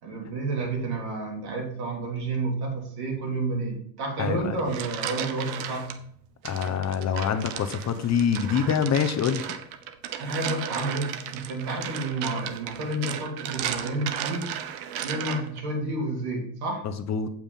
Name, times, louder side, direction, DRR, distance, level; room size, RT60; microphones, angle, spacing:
voice 1, 0.0-5.9 10.2-14.5 15.0-16.9, right 2 dB, 60° right, 1 dB, 3.7 m, -30 dB
voice 2, 4.2-4.6 6.4-9.5 16.8-17.3, left 7 dB, 35° left, 8 dB, 0.9 m, -25 dB
sound 1, 4.4-6.0 6.4-15.6, right 10 dB, 80° right, 1.1 m, -35 dB
8.6 x 6.0 x 5.4 m, 0.64 s
supercardioid pair, 100°, 44 cm